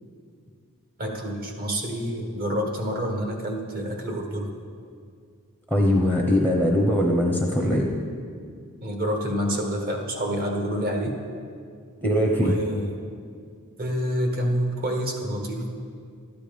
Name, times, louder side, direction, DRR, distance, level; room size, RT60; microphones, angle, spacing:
voice 1, 1.0-4.5 7.6-7.8 8.8-11.2 12.4-12.9 13.8-15.7, equal, 40° right, 2 dB, 1.5 m, -28 dB
voice 2, 5.7-7.9 12.0-12.5, equal, 10° right, 1 dB, 0.9 m, -21 dB
13.0 x 9.9 x 5.2 m, 2.2 s
head